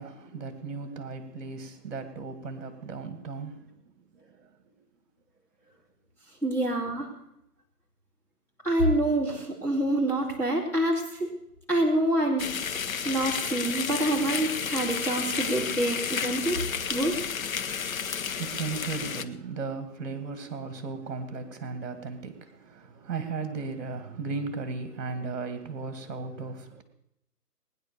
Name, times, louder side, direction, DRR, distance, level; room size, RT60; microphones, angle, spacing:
voice 1, 0.0-3.7 4.1-4.5 17.6-26.8, right 4 dB, 50° right, 2.0 m, -36 dB
voice 2, 6.4-7.1 8.6-11.3 11.7-12.5 12.7-16.6 16.9-17.2, right 1 dB, 5° left, 2.5 m, -26 dB
sound 1, 12.4-19.3, left 7 dB, 55° left, 1.1 m, -32 dB
20.0 x 9.9 x 6.8 m
hypercardioid pair, 165°, 48 cm